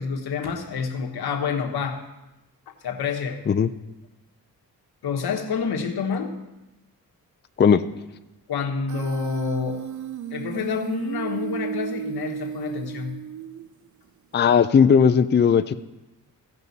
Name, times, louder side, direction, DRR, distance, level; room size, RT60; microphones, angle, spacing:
voice 1, 0.0-2.0 2.8-3.4 5.0-6.3 8.5-9.8 10.3-13.2, left 5 dB, 85° left, 3 dB, 1.2 m, -28 dB
Human voice, 8.9-13.9, right 8 dB, 55° right, 0.6 m, -34 dB
voice 2, 14.3-15.7, left 7 dB, 30° left, 10 dB, 0.4 m, -17 dB
16.0 x 5.4 x 4.1 m, 0.99 s
cardioid pair, 65°, 37 cm